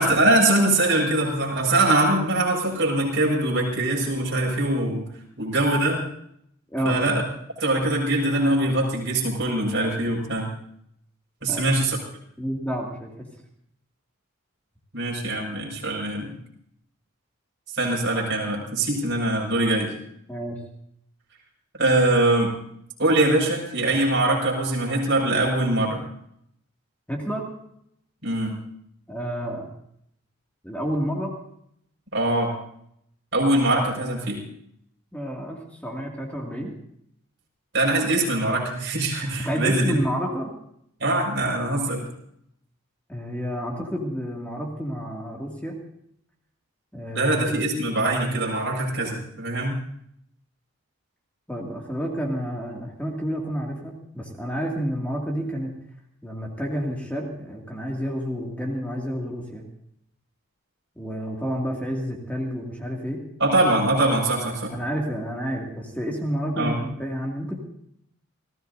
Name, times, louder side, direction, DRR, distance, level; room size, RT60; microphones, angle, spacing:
voice 1, 0.0-5.1 5.4-6.0 6.8-7.2 7.6-10.5 11.4-12.0 14.9-16.3 17.7-19.9 21.8-22.5 23.0-26.0 28.2-28.6 32.1-32.5 33.3-34.4 37.7-39.9 41.0-42.1 47.1-49.8 63.4-64.7 66.6-66.8, right 2 dB, 60° right, -1 dB, 5.9 m, -22 dB
voice 2, 6.7-7.1 11.5-11.6 12.4-13.1 20.3-20.6 27.1-27.5 29.1-29.7 30.6-31.3 35.1-36.7 39.5-40.6 43.1-45.8 46.9-47.5 51.5-55.7 56.2-59.6 61.0-63.2 64.7-67.6, equal, 5° left, -2 dB, 2.3 m, -30 dB
29.0 x 15.5 x 2.7 m, 0.71 s
head